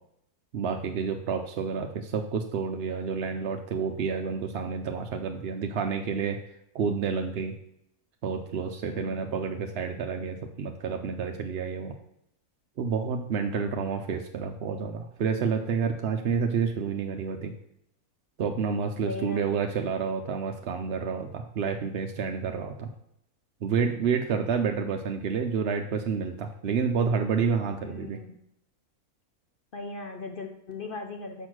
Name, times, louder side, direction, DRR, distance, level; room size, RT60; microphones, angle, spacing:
voice 1, 0.5-6.4 6.7-7.5 8.2-12.0 12.8-17.5 18.4-22.9 23.6-28.2, right 6 dB, 60° right, 4 dB, 0.7 m, -29 dB
voice 2, 8.9-9.4 13.5-14.1 19.0-19.5 27.8-28.4 29.7-31.5, left 3 dB, 50° left, 5 dB, 0.7 m, -39 dB
6.3 x 5.6 x 6.1 m, 0.76 s
omnidirectional pair, 1.6 m